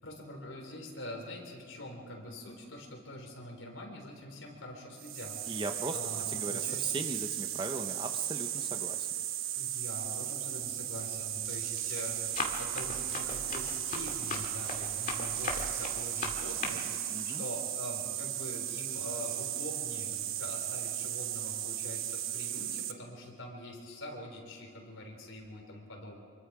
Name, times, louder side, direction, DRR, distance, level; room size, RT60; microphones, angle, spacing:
voice 1, 0.0-5.6 5.9-7.1 9.5-26.2, left 1 dB, 65° left, 1 dB, 4.0 m, -44 dB
sound 1, 5.0-22.9, right 12 dB, 70° right, 1.0 m, -36 dB
voice 2, 5.5-6.0 6.3-9.1 17.1-17.4, right 2 dB, 25° right, 6 dB, 0.8 m, -37 dB
Run, 10.6-10.9 11.4-16.7, left 3 dB, 40° left, 2.1 m, -39 dB
25.5 x 22.5 x 4.9 m, 2.4 s
head